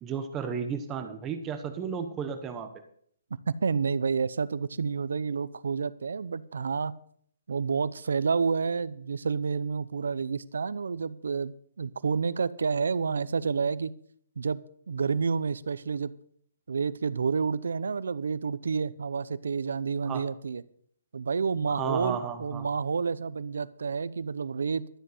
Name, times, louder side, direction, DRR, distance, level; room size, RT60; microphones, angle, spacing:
voice 1, 0.0-2.7 20.1-20.2 21.7-22.7, right 7 dB, 20° right, 7 dB, 1.1 m, -33 dB
voice 2, 3.5-6.9 7.5-13.9 14.4-16.1 16.7-20.6 21.1-24.9, right 5 dB, 80° right, 18 dB, 0.7 m, -29 dB
12.5 x 7.8 x 6.5 m, 0.62 s
hypercardioid pair, 150°, 0 cm